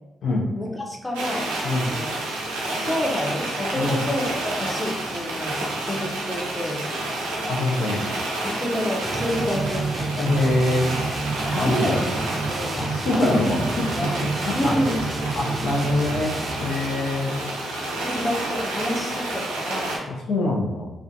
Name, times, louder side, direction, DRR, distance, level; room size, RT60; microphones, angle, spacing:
voice 1, 0.5-2.1 2.8-6.9 8.4-10.1 11.5-12.1 12.5-13.5 14.0-14.3 14.5-15.0 18.0-20.0, equal, 10° left, 0 dB, 0.6 m, -29 dB
sound 1, 1.1-20.0, right 1 dB, 90° right, 0.5 m, -29 dB
voice 2, 7.5-8.1 10.2-10.9 11.5-12.2 12.8-14.1 14.4-14.7 15.3-17.4 20.1-20.9, left 2 dB, 70° left, -1 dB, 0.5 m, -24 dB
sound 2, 9.0-16.8, right 3 dB, 30° right, 0.3 m, -30 dB
2.4 x 2.2 x 2.5 m, 0.94 s
hypercardioid pair, 45°, 0 cm